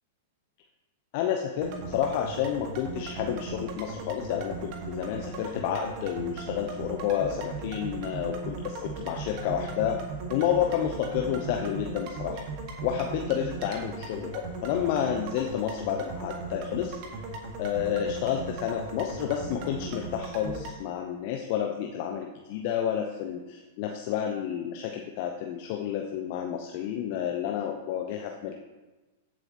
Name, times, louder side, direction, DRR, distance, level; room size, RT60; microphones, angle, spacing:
voice 1, 1.1-10.0 10.3-12.4 12.8-17.0 17.6-28.5, left 9 dB, 50° left, 3 dB, 0.8 m, -30 dB
sound 1, 1.6-20.7, right 3 dB, 45° right, 1.7 m, -38 dB
15.0 x 7.6 x 3.0 m, 1.2 s
figure-of-eight pair, 100°, 0 cm